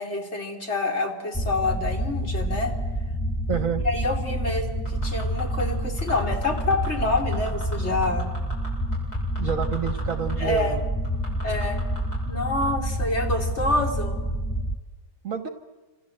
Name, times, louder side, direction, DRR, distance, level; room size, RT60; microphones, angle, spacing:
voice 1, 0.0-2.7 3.8-8.3 10.4-10.8 11.4-11.8 12.3-14.2, left 2 dB, 35° left, 2 dB, 3.2 m, -27 dB
sound 1, 1.3-14.8, equal, 5° left, 0.5 m, -28 dB
voice 2, 3.5-3.8 9.4-10.8 15.2-15.5, right 7 dB, 50° right, 8 dB, 1.4 m, -28 dB
sound 2, 4.9-5.6 6.0-6.9 7.2-7.8 8.0-10.3 10.6-10.7 11.0-12.2 12.6-12.7, equal, 55° left, 8.6 m, -39 dB
28.0 x 26.5 x 7.8 m, 1.3 s
omnidirectional pair, 2.0 m